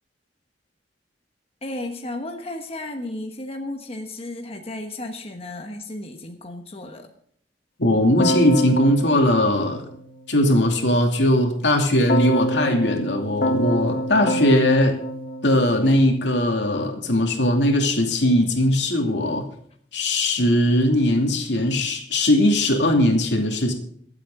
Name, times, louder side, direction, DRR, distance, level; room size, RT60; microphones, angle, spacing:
voice 1, 1.6-7.1, left 1 dB, 35° left, 4 dB, 1.1 m, -34 dB
voice 2, 7.8-9.8 10.3-15.0 15.4-19.4 19.9-23.7, left 1 dB, 85° left, 3 dB, 2.6 m, -19 dB
Keyboard (musical), 8.2-10.5 12.1-16.4, equal, 55° left, 1.2 m, -27 dB
23.0 x 8.3 x 3.8 m, 0.63 s
head